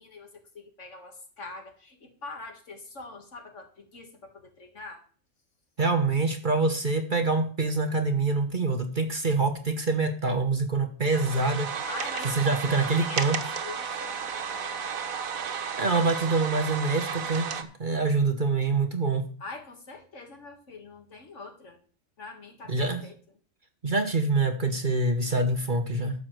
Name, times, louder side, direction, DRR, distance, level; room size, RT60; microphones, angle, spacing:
voice 1, 0.0-5.0 11.9-15.0 19.4-21.8 22.2-23.2, left 3 dB, 60° left, 4 dB, 2.2 m, -43 dB
voice 2, 5.8-11.7 12.2-13.4 15.8-17.5 17.8-19.3 22.7-23.0 23.8-26.2, right 3 dB, 40° right, 6 dB, 1.2 m, -25 dB
sound 1, 11.1-17.6, right 6 dB, 80° right, 1.5 m, -33 dB
12.0 x 4.8 x 7.6 m, 0.42 s
omnidirectional pair, 1.4 m